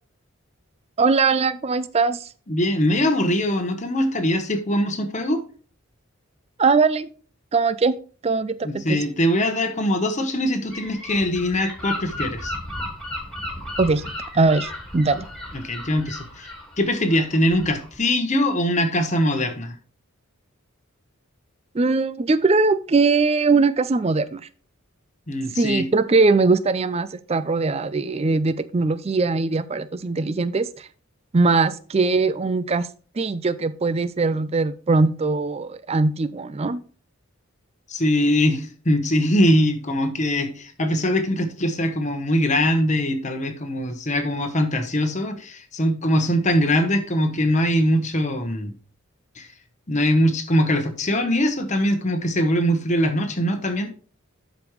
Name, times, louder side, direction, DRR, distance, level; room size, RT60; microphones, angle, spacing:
voice 1, 1.0-2.3 6.6-7.1 7.5-8.0 8.2-9.0 13.8-14.0 14.3-15.3 21.7-24.4 25.6-30.9 31.3-32.9 33.2-36.8, right 3 dB, 25° right, 14 dB, 0.4 m, -21 dB
voice 2, 2.5-5.4 8.6-12.5 15.6-16.5 16.8-19.7 25.3-25.9 37.9-48.7 49.4-49.5 49.9-53.9, equal, 30° left, 7 dB, 1.0 m, -22 dB
Gull seagull / Wind, 10.7-18.0, left 1 dB, 5° left, 2.9 m, -34 dB
12.0 x 5.1 x 3.1 m, 0.40 s
head